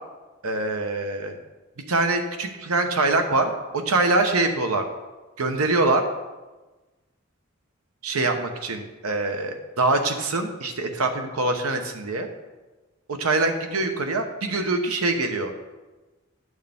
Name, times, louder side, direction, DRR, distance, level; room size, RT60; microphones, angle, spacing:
voice 1, 0.4-1.4 1.9-4.8 5.4-6.0 8.0-12.3 13.1-15.5, right 2 dB, 90° right, 5 dB, 1.0 m, -24 dB
10.5 x 6.4 x 3.5 m, 1.2 s
head